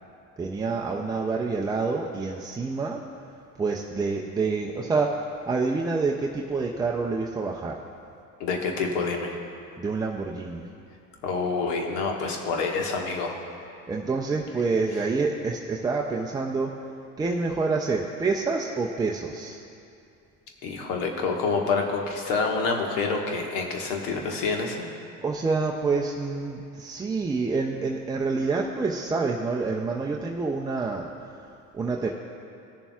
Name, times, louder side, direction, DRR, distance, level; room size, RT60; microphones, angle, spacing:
voice 1, 0.4-3.0 3.6-7.8 9.8-10.6 13.9-16.7 17.2-19.6 25.2-31.1 31.7-32.1, right 4 dB, 10° right, -1 dB, 0.3 m, -27 dB
voice 2, 8.4-9.4 11.2-13.3 20.6-24.8, left 4 dB, 75° left, 1 dB, 1.5 m, -27 dB
17.5 x 6.9 x 2.3 m, 2.5 s
hypercardioid pair, 80°, 49 cm